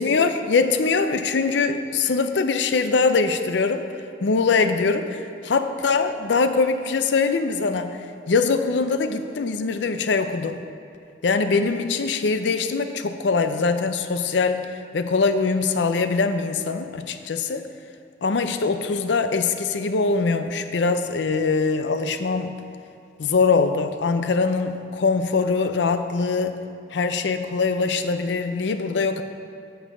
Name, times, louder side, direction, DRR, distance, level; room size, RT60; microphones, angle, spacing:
voice 1, 0.0-3.9 4.2-8.0 8.3-10.6 11.2-17.6 18.2-22.6 23.2-26.6 26.9-29.2, left 4 dB, 70° left, 9 dB, 0.5 m, -22 dB
8.5 x 5.5 x 5.4 m, 2.7 s
head